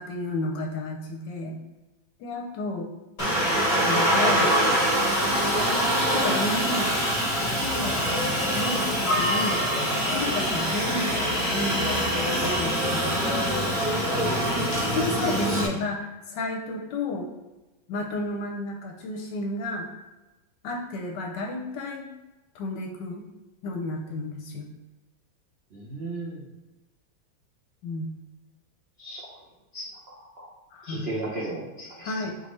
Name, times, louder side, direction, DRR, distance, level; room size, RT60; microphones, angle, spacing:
voice 1, 0.0-1.6 2.2-2.9 3.7-4.6 5.5-7.3 7.6-8.0 8.5-9.6 10.1-13.1 14.5-17.3 17.9-19.9 20.6-22.0 22.5-23.3 23.6-24.7 27.8-28.1 30.7-31.2 32.0-32.4, left 2 dB, 70° left, 2 dB, 1.1 m, -32 dB
Aircraft, 3.2-15.7, equal, 30° left, 0.7 m, -24 dB
voice 2, 25.7-26.4 29.0-29.3 29.7-30.5 30.8-32.1, right 2 dB, 70° right, -5 dB, 0.6 m, -35 dB
4.0 x 3.6 x 3.1 m, 1.1 s
omnidirectional pair, 2.2 m